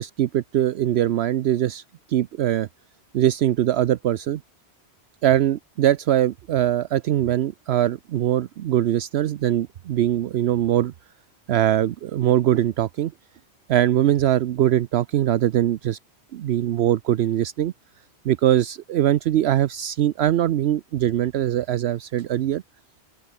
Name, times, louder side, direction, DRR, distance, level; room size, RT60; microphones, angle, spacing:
voice 1, 0.0-1.8 2.1-2.7 3.1-4.4 5.2-10.9 11.5-13.1 13.7-16.0 16.3-17.7 18.2-22.6, right 12 dB, 75° right, 0.9 m, -22 dB
open air
omnidirectional pair, 1.1 m